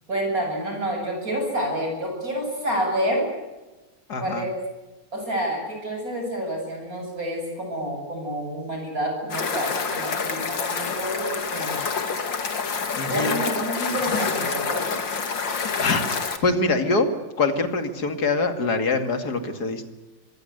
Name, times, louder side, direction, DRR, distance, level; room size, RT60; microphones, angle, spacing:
voice 1, 0.1-3.3 4.2-4.5 5.1-11.8 13.1-14.8, equal, 45° right, 2 dB, 8.5 m, -28 dB
voice 2, 4.1-4.5 13.0-13.4 15.8-16.1 16.4-17.1 17.4-19.8, left 3 dB, 55° left, 7 dB, 3.0 m, -24 dB
sound 1, 9.3-16.4, left 5 dB, 75° left, 2.9 m, -27 dB
25.0 x 23.0 x 8.1 m, 1.1 s
omnidirectional pair, 2.0 m